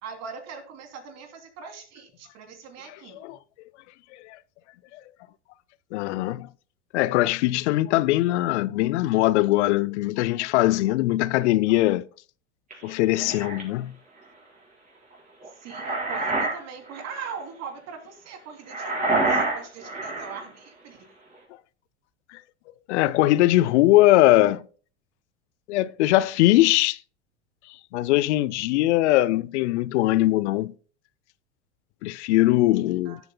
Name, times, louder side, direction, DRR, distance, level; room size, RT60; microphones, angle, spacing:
voice 1, 0.0-3.4 15.6-21.0 33.1-33.2, right 6 dB, 45° right, 3.0 m, -41 dB
voice 2, 2.9-3.4 4.2-4.4 4.9-5.0 5.9-6.5 6.9-12.0 12.8-13.9 22.3-22.4 22.9-24.6 25.7-27.0 27.9-30.7 32.0-33.2, left 16 dB, 70° left, 0.5 m, -21 dB
sound 1, 12.7-13.6 15.4-16.6 16.9-17.2 18.7-20.4, right 2 dB, 20° right, 4.7 m, -27 dB
17.0 x 7.8 x 2.2 m
hypercardioid pair, 95°, 36 cm